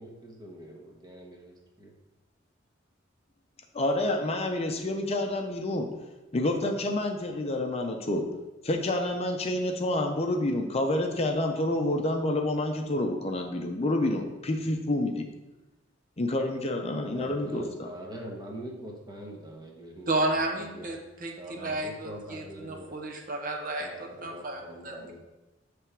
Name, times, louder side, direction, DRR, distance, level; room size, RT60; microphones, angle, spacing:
voice 1, 0.0-1.9 17.1-20.9 21.4-23.0 23.8-25.2, right 1 dB, 20° right, 0 dB, 1.1 m, -43 dB
voice 2, 3.7-5.9 6.3-8.2 8.6-15.3 16.2-17.9, left 1 dB, 30° left, 3 dB, 0.6 m, -28 dB
voice 3, 20.1-25.2, right 2 dB, 45° right, 2 dB, 0.8 m, -32 dB
6.2 x 3.4 x 5.8 m, 1.1 s
head